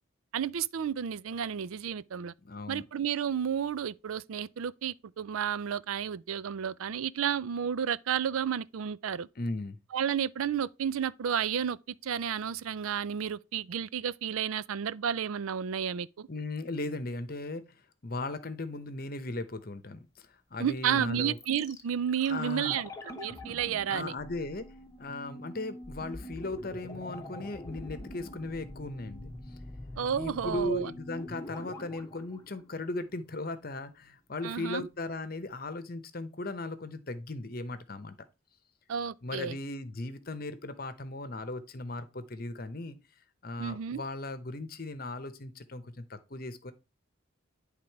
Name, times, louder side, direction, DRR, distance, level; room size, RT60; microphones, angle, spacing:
voice 1, 0.3-2.3 2.7-9.3 9.9-16.3 20.6-22.9 23.2-24.1 30.0-30.9 34.4-34.8 38.9-39.5 43.6-44.0, right 8 dB, 85° right, 0.4 m, -31 dB
voice 2, 2.4-2.8 9.4-9.8 16.3-17.6 18.0-21.4 22.3-22.8 23.9-24.7 25.0-29.3 30.1-38.2 39.2-43.0 43.4-46.7, left 2 dB, 45° left, 0.9 m, -37 dB
sound 1, 21.4-33.4 33.6-33.7, left 1 dB, 15° left, 1.0 m, -45 dB
10.5 x 3.7 x 4.6 m
head